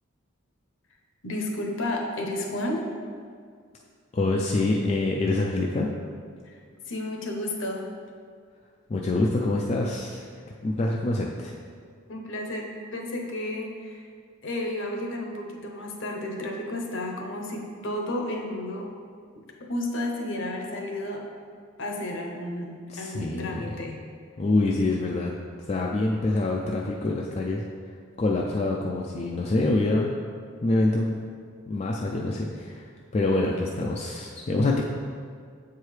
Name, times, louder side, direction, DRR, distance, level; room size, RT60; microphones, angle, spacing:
voice 1, 1.2-2.8 6.9-7.9 12.1-14.0 14.4-18.9 19.7-21.2 21.8-24.0, left 1 dB, 60° left, 1 dB, 0.8 m, -32 dB
voice 2, 4.1-5.9 8.9-10.3 10.6-11.6 22.9-23.8 24.4-25.3 25.7-27.6 28.2-30.1 30.6-31.2 31.7-32.8 33.1-34.8, left 2 dB, 30° left, -1 dB, 0.3 m, -25 dB
7.3 x 4.6 x 3.2 m, 2.1 s
head